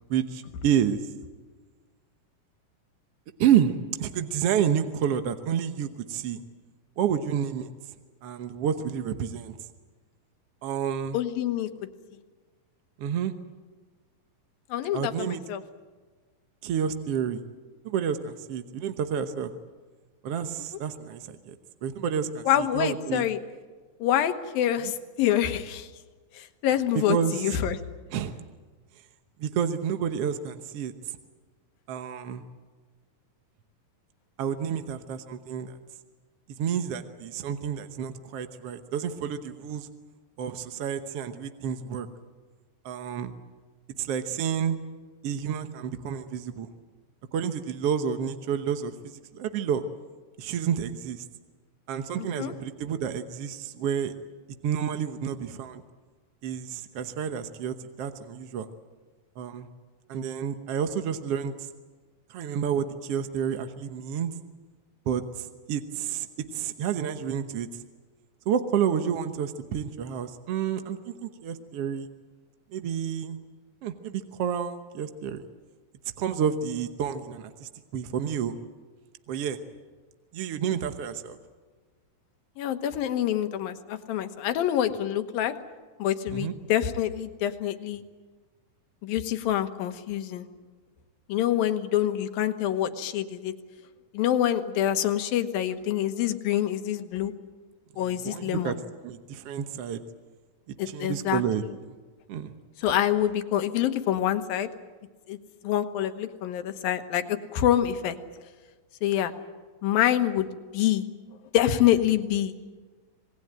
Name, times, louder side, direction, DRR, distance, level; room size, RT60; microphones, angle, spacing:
voice 1, 0.1-1.0 3.4-6.4 7.0-7.7 8.2-9.6 10.6-11.2 13.0-13.3 14.9-15.4 16.6-17.4 17.8-19.5 20.2-21.5 21.8-23.2 26.9-27.4 28.1-28.4 29.4-30.9 31.9-32.4 34.4-35.7 36.6-39.9 40.4-42.1 42.8-43.3 44.0-44.8 45.2-46.7 47.3-48.9 49.3-49.8 50.4-51.2 51.9-54.1 54.6-55.8 56.4-58.7 59.4-59.7 60.1-61.5 62.3-64.3 65.1-66.3 66.5-67.7 68.5-72.1 72.7-73.4 73.8-75.4 76.2-78.5 79.3-79.6 80.3-81.4 86.3-86.5 98.0-98.8 99.0-100.0 100.9-101.6 102.3-102.5, right 8 dB, 65° right, 8 dB, 1.5 m, -29 dB
voice 2, 11.1-11.7 14.7-15.6 22.5-23.4 24.0-25.9 26.3-27.8 52.2-52.5 82.6-85.5 86.0-88.0 89.0-90.5 91.3-93.5 94.1-97.3 98.0-98.8 100.8-101.4 102.8-104.7 105.3-105.4 105.6-108.2 109.0-109.3 109.8-110.5 110.7-111.1 111.5-112.5, left 11 dB, 85° left, 9 dB, 3.1 m, -26 dB
27.0 x 19.5 x 8.9 m, 1.4 s
omnidirectional pair, 4.0 m